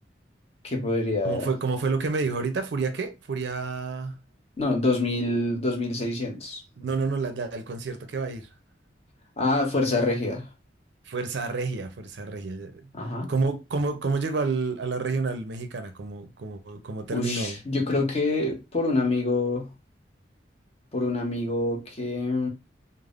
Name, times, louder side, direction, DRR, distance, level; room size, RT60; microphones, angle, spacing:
voice 1, 0.6-1.5 4.6-6.6 9.4-10.5 12.9-13.3 17.1-19.7 20.9-22.5, left 2 dB, 35° left, 0.8 m, -26 dB
voice 2, 1.2-4.1 6.8-8.5 11.1-12.8 13.3-17.6, right 4 dB, 65° right, 0.5 m, -29 dB
3.3 x 2.0 x 2.4 m
head